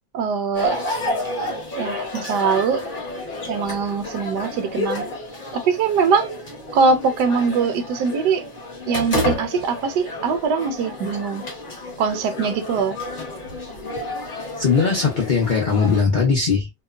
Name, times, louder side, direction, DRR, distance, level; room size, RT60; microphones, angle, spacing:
voice 1, 0.1-0.8 1.8-2.8 3.5-5.1 5.5-6.3 6.7-8.4 8.9-11.4 12.0-13.0, right 5 dB, 75° right, 1.1 m, -22 dB
sound 1, 0.5-16.0, left 1 dB, 40° left, 0.8 m, -30 dB
voice 2, 14.6-16.8, left 5 dB, 75° left, 0.4 m, -19 dB
2.8 x 2.1 x 2.4 m
omnidirectional pair, 1.9 m